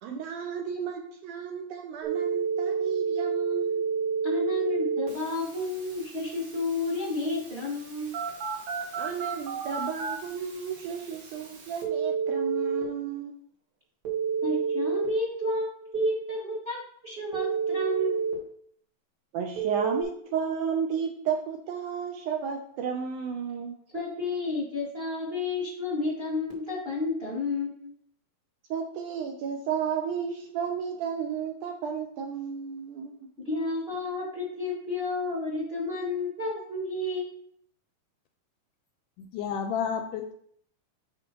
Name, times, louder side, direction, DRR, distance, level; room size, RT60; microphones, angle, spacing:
voice 1, 0.0-3.9 9.0-13.4 19.3-23.8 28.7-33.3, right 7 dB, 75° right, 2 dB, 1.9 m, -33 dB
Telephone, 2.0-12.8 14.1-15.1 17.3-18.3 19.6-20.0, right 6 dB, 55° right, 2.4 m, -31 dB
voice 2, 4.2-8.2 14.4-18.4 23.9-27.9 33.4-37.5, left 2 dB, 30° right, -4 dB, 1.2 m, -31 dB
voice 3, 39.2-40.3, left 7 dB, 80° left, 6 dB, 1.9 m, -31 dB
10.0 x 5.2 x 3.0 m, 0.63 s
omnidirectional pair, 4.1 m